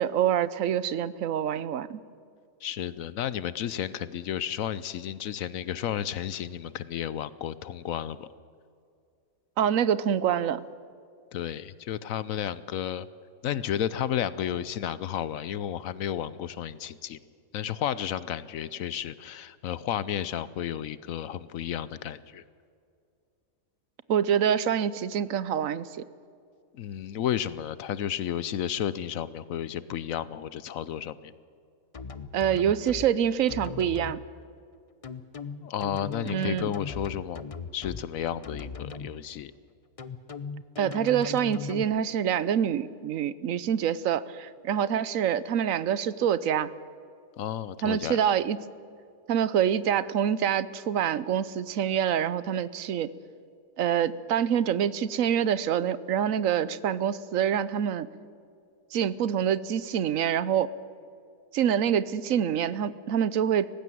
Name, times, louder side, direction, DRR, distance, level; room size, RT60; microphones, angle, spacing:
voice 1, 0.0-2.0 9.6-10.6 24.1-26.0 32.3-34.2 36.2-36.8 40.8-46.7 47.8-48.6 49.3-53.1 53.8-58.1 58.9-60.7 61.5-63.7, right 9 dB, 70° right, 17 dB, 1.1 m, -26 dB
voice 2, 2.6-8.3 11.3-13.1 13.4-17.2 17.5-22.4 26.7-31.3 35.6-37.4 37.7-39.5 47.4-48.2, left 10 dB, 75° left, 17 dB, 1.0 m, -32 dB
sound 1, 31.9-33.1 33.5-34.1 35.0-38.0 38.4-39.1 40.0-41.8, left 5 dB, 30° left, 0.7 m, -38 dB
19.0 x 15.5 x 9.2 m, 2.4 s
omnidirectional pair, 1.5 m